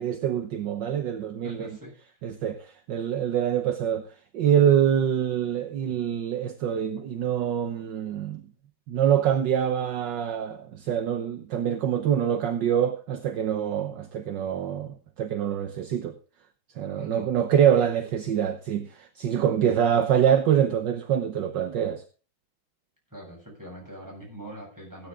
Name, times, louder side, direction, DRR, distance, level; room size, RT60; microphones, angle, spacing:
voice 1, 0.0-1.8 2.2-8.4 8.9-16.2 16.8-22.0, right 9 dB, 65° right, 1.5 m, -25 dB
voice 2, 1.4-1.9 17.0-17.3 23.1-25.1, right 1 dB, 10° right, 8.0 m, -42 dB
16.0 x 10.5 x 3.7 m
omnidirectional pair, 2.2 m